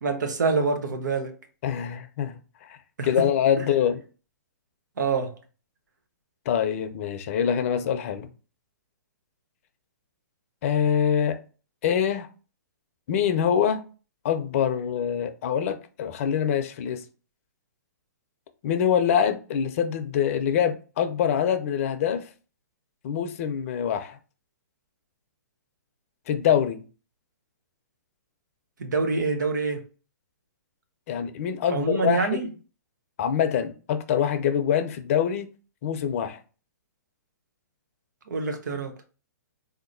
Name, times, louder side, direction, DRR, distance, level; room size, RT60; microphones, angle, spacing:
voice 1, 0.0-1.4 3.0-3.3 3.6-3.7 5.0-5.4 28.8-29.9 31.7-32.5 38.3-38.9, right 4 dB, 80° right, 0.9 m, -26 dB
voice 2, 1.6-2.4 2.7-2.8 3.0-4.0 6.5-8.3 10.6-11.4 11.8-12.3 13.1-13.8 14.2-17.0 18.6-22.3 23.0-24.2 26.3-26.8 31.1-32.4 33.2-35.5 35.8-36.4, left 8 dB, 50° left, 0.6 m, -24 dB
3.9 x 2.8 x 2.6 m
hypercardioid pair, 135°, 10 cm